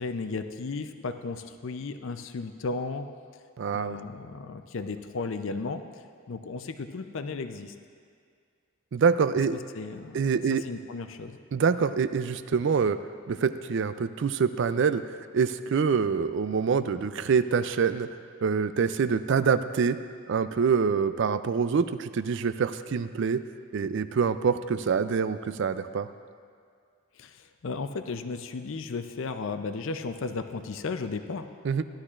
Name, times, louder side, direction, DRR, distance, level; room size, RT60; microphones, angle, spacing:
voice 1, 0.0-3.0 3.7-5.8 6.3-7.7 9.5-10.2 10.5-11.4 27.2-27.4 27.6-31.5, left 4 dB, 60° left, 9 dB, 0.5 m, -34 dB
voice 2, 3.6-4.0 8.9-9.6 10.1-10.6 11.5-13.0 13.3-15.0 15.3-18.1 18.4-20.0 20.3-23.4 23.7-26.1 31.6-31.8, right 6 dB, 55° right, 12 dB, 0.3 m, -25 dB
16.0 x 11.5 x 2.5 m, 2.2 s
head